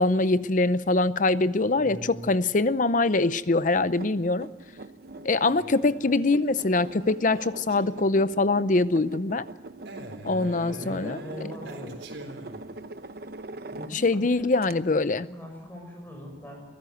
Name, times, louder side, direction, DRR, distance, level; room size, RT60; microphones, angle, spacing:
voice 1, 0.0-4.5 5.2-9.5 10.2-11.2 13.9-15.3, left 2 dB, 45° left, 0.6 m, -23 dB
voice 2, 1.8-2.3 10.7-12.0 13.7-14.9 15.2-16.6, left 1 dB, 10° left, 6.7 m, -41 dB
sound 1, 3.7-14.2 14.6-14.7, right 2 dB, 55° right, 0.9 m, -43 dB
Male speech man speaking, 5.3-8.3 9.9-12.8, right 1 dB, 90° right, 4.1 m, -43 dB
23.5 x 16.5 x 8.0 m
head